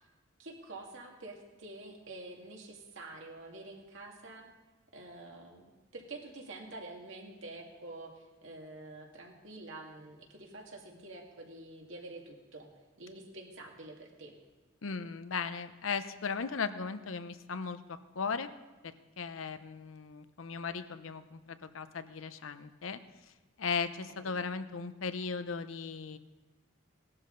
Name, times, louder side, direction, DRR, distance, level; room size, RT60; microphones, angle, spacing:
voice 1, 0.4-4.4 4.9-12.7 13.0-14.3, right 2 dB, 75° right, 1 dB, 2.1 m, -47 dB
voice 2, 14.8-18.5 18.8-23.0 23.6-26.2, left 5 dB, 90° left, 12 dB, 0.7 m, -37 dB
17.5 x 12.0 x 3.9 m, 1.2 s
head